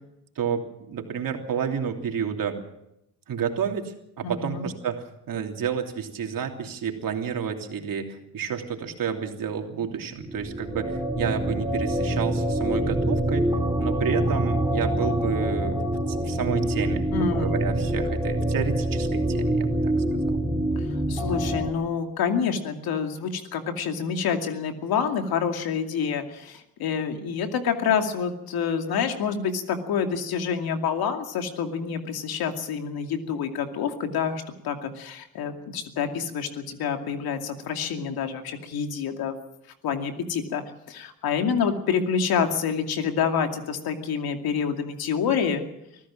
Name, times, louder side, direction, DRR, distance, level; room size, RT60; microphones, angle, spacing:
voice 1, 0.3-2.6 3.3-13.5 13.8-15.8 16.1-19.9 20.2-20.4, right 7 dB, 65° right, 3 dB, 3.2 m, -30 dB
voice 2, 4.2-4.7 17.1-17.5 20.8-20.9 21.1-39.3 39.8-45.6, left 6 dB, 80° left, 5 dB, 2.5 m, -27 dB
sound 1, 10.1-21.7, right 1 dB, 10° right, 4.0 m, -25 dB
24.5 x 15.0 x 7.5 m, 0.82 s
supercardioid pair, 55°, 36 cm